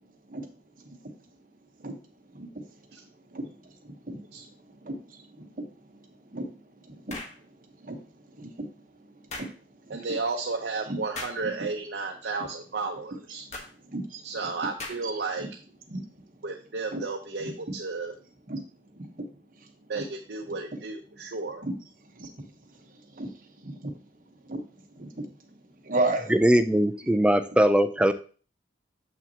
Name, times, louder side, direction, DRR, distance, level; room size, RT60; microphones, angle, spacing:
voice 1, 0.8-1.2 1.8-2.0 2.3-9.5 9.8-10.1 10.9-11.0 11.4-11.7 13.5-14.5 15.0-15.5 15.9-16.3 16.9-17.0 17.4-17.8 18.5-18.6 18.9-20.0 20.4-20.8 21.6-21.8 22.1-24.1 24.4-26.3 27.5-27.6, right 2 dB, 50° right, 5 dB, 1.0 m, -37 dB
sound 1, 7.1-7.4 9.3-9.5 11.1-11.4 13.5-13.7 14.8-15.2, left 2 dB, 40° left, 1.2 m, -38 dB
voice 2, 9.9-13.4 14.2-15.5 16.4-18.1 19.9-21.6, right 3 dB, 75° right, 2 dB, 0.7 m, -33 dB
voice 3, 26.3-28.1, right 1 dB, 5° right, 9 dB, 0.4 m, -21 dB
7.1 x 5.8 x 2.8 m, 0.40 s
head